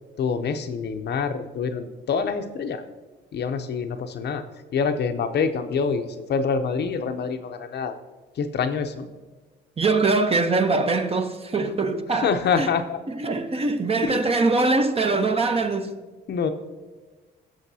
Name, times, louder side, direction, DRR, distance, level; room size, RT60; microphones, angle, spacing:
voice 1, 0.2-2.8 3.3-4.4 4.7-8.0 8.4-9.1 12.2-13.0 14.1-14.2 16.3-16.5, left 5 dB, 55° left, 0.7 m, -26 dB
voice 2, 9.8-12.7 13.1-15.9, right 3 dB, 30° right, 0.9 m, -23 dB
16.0 x 6.4 x 2.8 m
cardioid pair, 90°, 20 cm